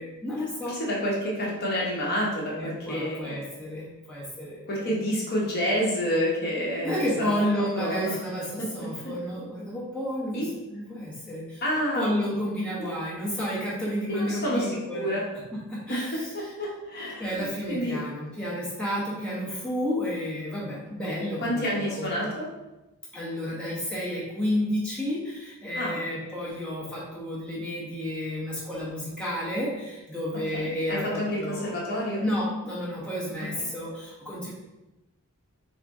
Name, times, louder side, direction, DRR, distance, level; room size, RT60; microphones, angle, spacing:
voice 1, 0.0-0.8 2.5-5.0 6.8-11.6 11.9-15.1 15.5-16.5 17.2-22.3 23.1-31.8 32.2-34.5, equal, 5° left, -7 dB, 1.0 m, -31 dB
voice 2, 0.7-3.4 4.7-7.3 7.7-8.2 8.6-8.9 10.3-10.5 11.6-12.1 12.8-13.0 14.1-14.7 14.9-15.2 15.9-18.0 21.1-22.5 25.8-26.0 30.6-32.2, equal, 45° left, -4 dB, 1.0 m, -29 dB
4.0 x 3.0 x 3.6 m, 1.0 s
head